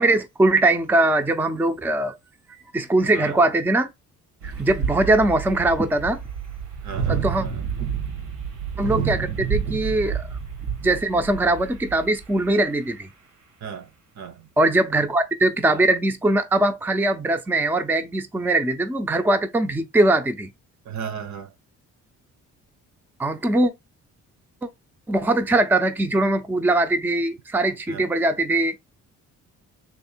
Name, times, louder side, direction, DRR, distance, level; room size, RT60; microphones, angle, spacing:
voice 1, 0.0-2.1 2.7-3.9 4.4-6.2 7.1-7.4 8.8-10.2 10.8-13.1 14.6-20.5 23.2-23.7 24.6-24.7 25.1-28.8, right 2 dB, 5° right, 0.5 m, -21 dB
voice 2, 3.1-3.5 6.8-7.6 13.6-14.5 20.8-21.5 27.9-28.1, right 7 dB, 65° right, 0.9 m, -36 dB
sound 1, 4.4-12.6, right 7 dB, 90° right, 1.6 m, -29 dB
3.5 x 3.2 x 4.3 m
cardioid pair, 90°, 30 cm